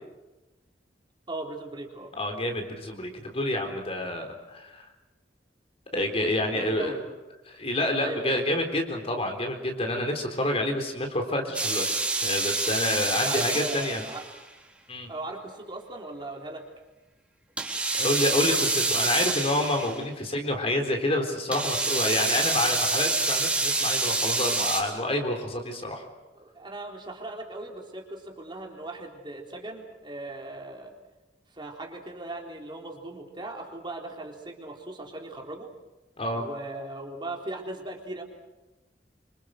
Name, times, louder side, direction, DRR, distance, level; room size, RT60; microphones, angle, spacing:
voice 1, 1.3-2.1 6.5-7.1 8.0-8.5 13.1-14.2 15.1-16.6 26.4-30.9 31.5-35.7 36.3-38.2, right 2 dB, 25° right, 1 dB, 3.8 m, -38 dB
voice 2, 2.2-4.9 5.9-7.0 7.5-14.0 14.9-15.1 17.9-26.0 36.2-36.5, left 1 dB, 35° left, 4 dB, 3.8 m, -28 dB
sound 1, 11.5-14.4 17.6-20.0 21.5-24.8, right 3 dB, 5° right, 4.2 m, -27 dB
26.5 x 26.0 x 6.6 m, 1.1 s
head